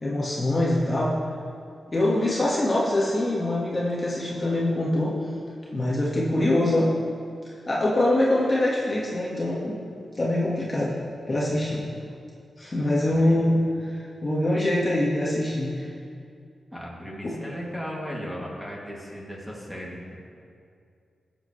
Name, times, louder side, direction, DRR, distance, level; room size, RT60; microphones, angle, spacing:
voice 1, 0.0-1.1 1.9-5.2 5.7-6.9 7.7-9.8 10.2-11.0 11.3-11.9 12.6-15.8 17.2-17.3, left 1 dB, 30° left, -6 dB, 1.8 m, -24 dB
voice 2, 11.5-11.9 13.1-13.6 16.7-20.2, equal, ahead, -5 dB, 2.6 m, -37 dB
20.5 x 7.6 x 3.3 m, 2.4 s
wide cardioid pair, 95°, 0 cm